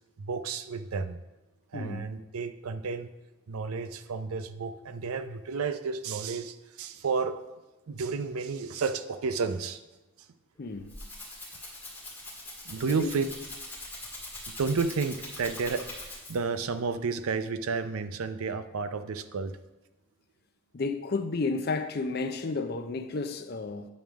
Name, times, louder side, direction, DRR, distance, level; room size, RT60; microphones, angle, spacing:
voice 1, 0.2-1.2 1.7-3.1 3.5-7.4 7.9-9.8 12.6-13.3 14.6-19.5, right 4 dB, 80° right, 0.5 m, -31 dB
voice 2, 1.7-2.1 10.6-10.9 12.9-13.1 20.7-23.9, left 3 dB, 45° left, 0.5 m, -32 dB
Rattle (instrument), 10.6-16.6, left 1 dB, 10° left, 1.7 m, -42 dB
9.2 x 3.5 x 6.1 m
head